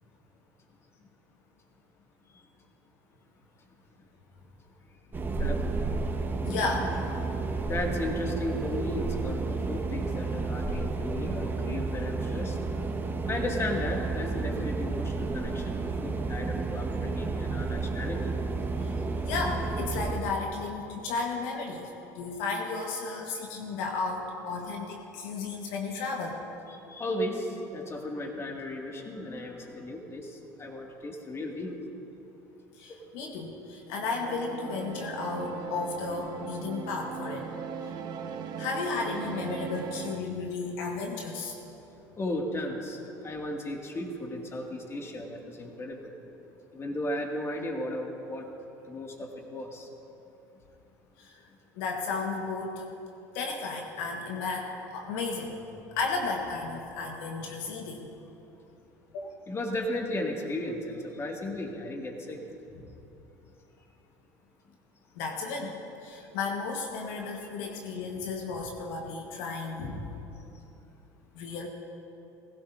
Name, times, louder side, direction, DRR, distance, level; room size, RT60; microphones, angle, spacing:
sound 1, 5.1-20.2, right 3 dB, 25° right, 1.5 m, -31 dB
voice 1, 6.4-7.0 18.8-26.4 32.7-37.5 38.6-41.6 51.2-51.5 51.7-52.8 53.3-55.5 55.9-58.1 59.1-59.3 65.1-70.1 71.3-71.7, left 4 dB, 70° left, 1 dB, 1.5 m, -34 dB
voice 2, 7.7-12.6 13.3-18.3 26.7-30.3 30.6-31.8 32.9-33.0 36.1-36.2 42.2-43.0 43.2-46.1 46.7-48.5 48.9-49.9 59.5-62.4, left 1 dB, 30° left, 1 dB, 2.3 m, -35 dB
sound 2, 33.9-40.2, right 6 dB, 50° right, 1.1 m, -39 dB
19.5 x 16.5 x 2.7 m, 2.9 s
hypercardioid pair, 75°, 9 cm